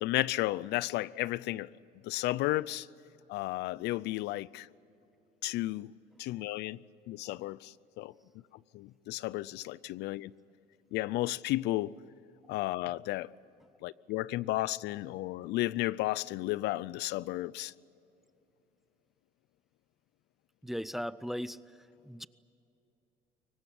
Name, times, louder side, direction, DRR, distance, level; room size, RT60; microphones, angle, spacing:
voice 1, 0.0-1.7 2.0-2.9 3.3-4.7 5.4-5.9 6.2-6.8 7.1-8.1 8.7-10.3 10.9-12.0 12.5-13.3 13.8-17.7, left 17 dB, 85° left, 0.5 m, -33 dB
voice 2, 20.6-21.6 22.0-22.3, equal, ahead, 0.6 m, -37 dB
24.0 x 18.5 x 9.9 m
cardioid pair, 110°, 17 cm